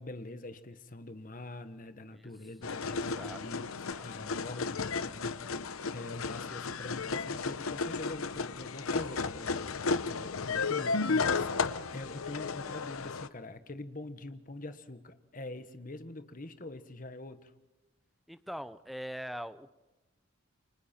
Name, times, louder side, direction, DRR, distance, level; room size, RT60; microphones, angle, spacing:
voice 1, 0.0-3.7 4.0-9.7 10.0-17.5, left 2 dB, 40° left, 10 dB, 1.3 m, -44 dB
sound 1, 2.6-13.3, left 4 dB, 85° left, 0.8 m, -34 dB
voice 2, 2.9-3.4 3.7-4.1 18.3-19.7, equal, ahead, 12 dB, 0.7 m, -43 dB
29.0 x 24.5 x 4.4 m, 1.1 s
head